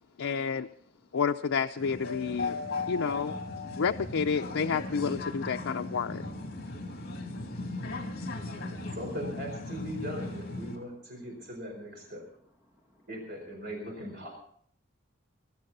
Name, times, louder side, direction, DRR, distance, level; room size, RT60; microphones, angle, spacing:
voice 1, 0.2-0.7 1.1-2.6 2.9-3.3 3.8-6.2, left 6 dB, 80° left, 4 dB, 0.5 m, -30 dB
sound 1, 1.8-10.8, left 2 dB, 50° left, 2.8 m, -37 dB
voice 2, 8.7-12.2 13.1-14.3, equal, 55° right, 1 dB, 4.6 m, -39 dB
voice 3, 12.6-13.1, left 1 dB, 15° right, 3 dB, 1.9 m, -68 dB
21.5 x 12.0 x 4.1 m, 0.62 s
head